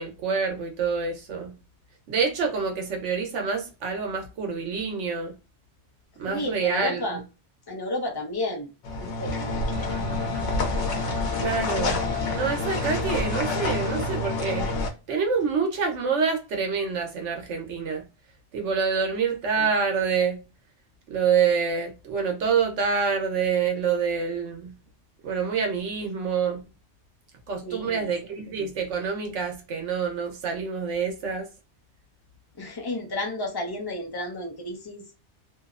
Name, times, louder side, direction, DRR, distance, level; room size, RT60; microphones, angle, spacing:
voice 1, 0.0-1.5 2.1-5.3 6.2-7.2 11.4-12.0 12.3-14.7 15.1-18.0 18.5-20.4 21.1-24.7 25.2-26.6 27.5-31.5, right 5 dB, 85° right, 1.0 m, -27 dB
voice 2, 6.3-7.2 7.7-8.7 9.0-9.7 27.6-28.1 32.6-35.0, left 1 dB, 30° left, 0.5 m, -32 dB
sound 1, 8.8-14.9, left 3 dB, 90° left, 1.0 m, -28 dB
sound 2, 9.7-14.1, right 1 dB, 55° right, 0.7 m, -36 dB
2.7 x 2.0 x 2.3 m
omnidirectional pair, 1.2 m